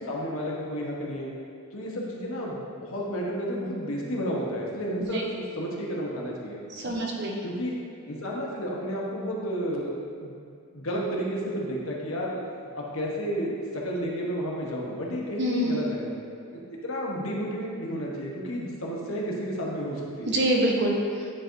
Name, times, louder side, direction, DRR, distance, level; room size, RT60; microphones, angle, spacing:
voice 1, 0.1-1.3 1.7-6.6 7.4-7.8 8.1-9.9 10.2-10.3 10.7-12.4 12.7-16.1 16.5-20.4, equal, 65° left, -3 dB, 1.1 m, -31 dB
voice 2, 6.7-7.4 15.4-15.9 20.3-21.3, right 1 dB, 50° right, -1 dB, 0.8 m, -26 dB
9.6 x 4.6 x 2.6 m, 2.3 s
head